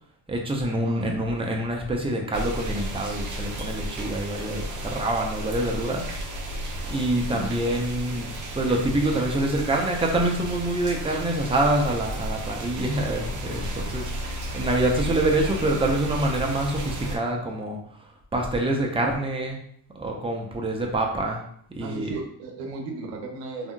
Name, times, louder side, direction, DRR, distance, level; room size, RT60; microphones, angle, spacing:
voice 1, 0.3-6.1 6.9-17.8 18.3-19.6 19.9-21.4 21.7-22.1, right 1 dB, 10° right, 0 dB, 0.7 m, -26 dB
voice 2, 0.8-1.2 7.2-7.5 21.8-23.7, right 3 dB, 90° right, 2 dB, 0.7 m, -34 dB
sound 1, 2.3-17.2, right 1 dB, 40° right, 0.7 m, -33 dB
3.4 x 2.7 x 2.3 m, 0.65 s
supercardioid pair, 65°, 47 cm